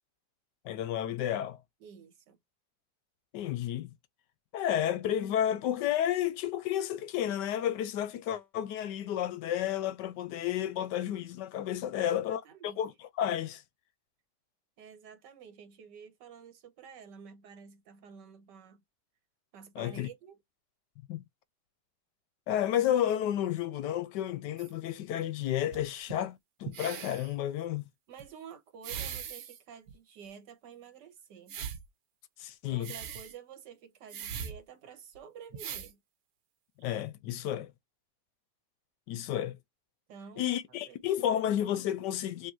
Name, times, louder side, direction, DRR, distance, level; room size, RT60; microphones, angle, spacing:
voice 1, 0.6-1.6 3.3-3.9 4.5-12.9 13.2-13.6 19.8-20.1 21.1-21.2 22.5-27.8 32.4-32.9 36.8-37.7 39.1-39.6 40.4-42.5, left 11 dB, 80° left, 1.3 m, -31 dB
voice 2, 1.8-2.4 12.0-12.8 14.8-18.8 19.5-20.4 28.1-31.6 32.7-36.0 40.1-40.6 40.9-41.5, right 7 dB, 90° right, 1.7 m, -50 dB
sound 1, 24.6-24.7 25.7-26.1 26.6-27.3 28.2-28.3 28.8-29.6 29.9-30.0 31.5-31.9 32.8-33.4 34.1-34.6 35.2-35.3 35.5-35.9 36.8-36.9, right 8 dB, 65° right, 1.2 m, -40 dB
5.3 x 2.7 x 2.6 m
omnidirectional pair, 1.8 m